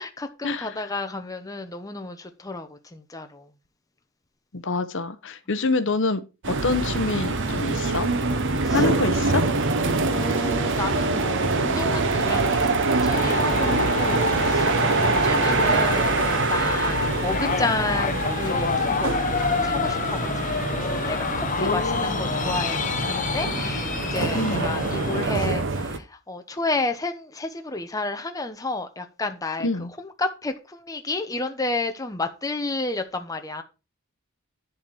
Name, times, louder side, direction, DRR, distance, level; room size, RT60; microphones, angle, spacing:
voice 1, 0.0-3.5 8.6-8.9 10.1-33.6, left 2 dB, 15° left, 0.9 m, -31 dB
voice 2, 4.5-8.1 8.7-9.4 21.6-22.3 24.3-24.7 29.6-29.9, left 3 dB, 55° left, 0.9 m, -26 dB
sound 1, 6.4-26.0, right 3 dB, 55° right, 1.0 m, -25 dB
sound 2, 13.1-25.3, left 4 dB, 35° left, 1.1 m, -28 dB
11.0 x 4.3 x 6.3 m
head